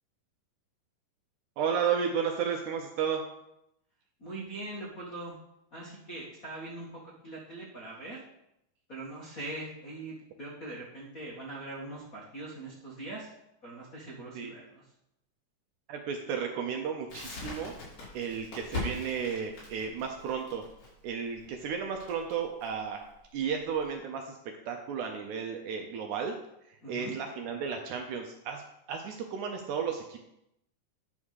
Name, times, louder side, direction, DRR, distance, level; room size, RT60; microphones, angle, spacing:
voice 1, 1.6-3.2 14.4-14.5 15.9-17.7 18.1-20.6 21.0-23.0 23.3-24.3 24.7-26.3 26.7-28.6 28.9-30.2, right 7 dB, 75° right, 3 dB, 1.8 m, -33 dB
voice 2, 4.2-5.4 5.7-6.9 7.2-8.2 8.9-13.3 13.6-14.8 26.8-27.2, right 2 dB, 80° left, -4 dB, 0.7 m, -41 dB
Crackle, 17.1-23.9, left 3 dB, 60° left, 4.8 m, -41 dB
10.5 x 3.6 x 6.3 m, 0.83 s
omnidirectional pair, 4.2 m